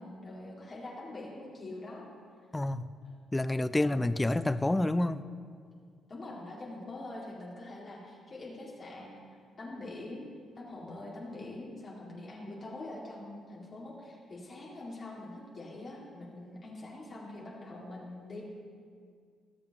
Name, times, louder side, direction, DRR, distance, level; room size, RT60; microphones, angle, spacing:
voice 1, 0.0-2.1 3.0-3.1 3.8-4.0 6.1-9.1 9.6-10.2 10.6-18.4, left 2 dB, 40° left, -4 dB, 2.1 m, -44 dB
voice 2, 2.5-2.9 3.3-5.2, left 1 dB, 15° left, 14 dB, 0.3 m, -28 dB
19.0 x 6.9 x 2.9 m, 2.1 s
cardioid pair, 90°, 0 cm